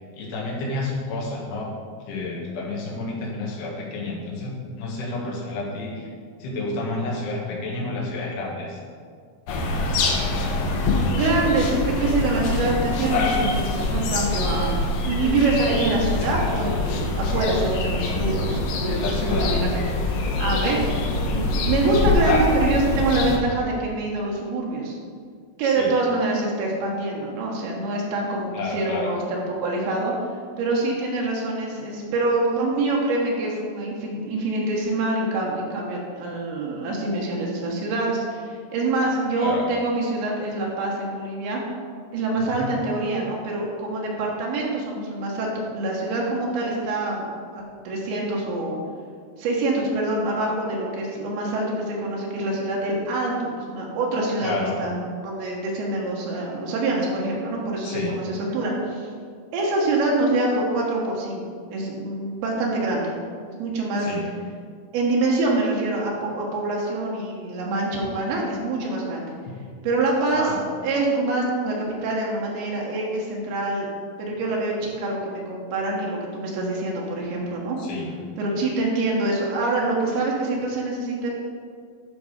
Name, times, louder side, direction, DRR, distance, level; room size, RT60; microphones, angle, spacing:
voice 1, 0.1-1.7 2.1-6.1 6.4-8.8 18.9-19.5 25.6-25.9 28.5-29.1 39.4-39.7 42.5-42.7 54.4-54.8 57.8-58.1 64.0-64.2 69.5-69.6 70.3-70.6 74.4-74.5 77.8-78.1, left 2 dB, 90° left, -3 dB, 3.7 m, -30 dB
sound 1, 9.5-23.4, left 2 dB, 70° left, 2.4 m, -24 dB
voice 2, 11.1-19.8 20.1-25.0 25.6-30.3 30.6-41.6 42.1-47.3 47.5-48.8 49.4-55.0 55.2-59.1 59.5-61.4 61.7-63.1 63.6-64.1 64.9-69.3 69.8-70.5 70.8-73.9 74.2-77.8 78.4-81.3, right 2 dB, 80° right, -2 dB, 3.1 m, -25 dB
11.0 x 5.3 x 4.9 m, 2.1 s
omnidirectional pair, 4.7 m